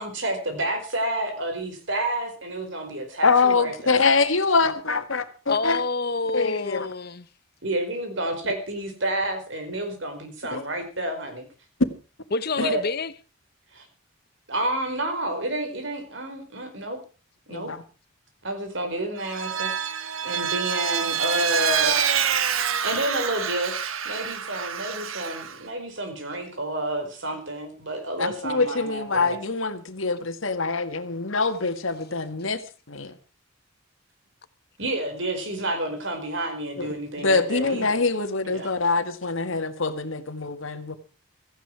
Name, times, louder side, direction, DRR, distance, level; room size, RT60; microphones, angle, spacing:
voice 1, 0.0-4.0 7.6-11.4 12.6-12.8 13.7-13.8 14.5-17.0 17.5-17.7 18.4-20.0 20.2-22.0 22.6-29.4 34.8-38.0 38.4-38.7, right 1 dB, 65° right, 4.9 m, -30 dB
voice 2, 3.2-5.8 6.3-6.9 10.5-10.6 17.5-17.8 28.2-32.6 32.9-33.1 36.8-36.9 37.2-41.0, left 4 dB, 75° left, 1.8 m, -24 dB
voice 3, 5.5-7.2 12.3-13.1, left 3 dB, 50° left, 0.9 m, -27 dB
Vehicle, 19.2-25.6, right 8 dB, 85° right, 1.4 m, -26 dB
17.0 x 15.0 x 4.7 m
head